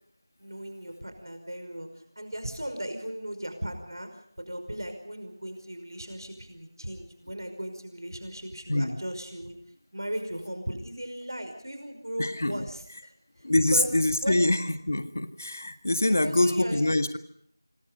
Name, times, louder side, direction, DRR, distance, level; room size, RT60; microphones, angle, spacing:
voice 1, 0.4-9.6 9.9-13.1 13.7-13.9 14.2-14.4 16.0-16.9, right 1 dB, 80° right, 7 dB, 5.5 m, -37 dB
voice 2, 12.2-12.6 13.4-14.6 14.9-17.2, left 1 dB, 40° left, 9 dB, 1.7 m, -24 dB
26.0 x 25.0 x 5.3 m, 0.67 s
figure-of-eight pair, 175°, 2 cm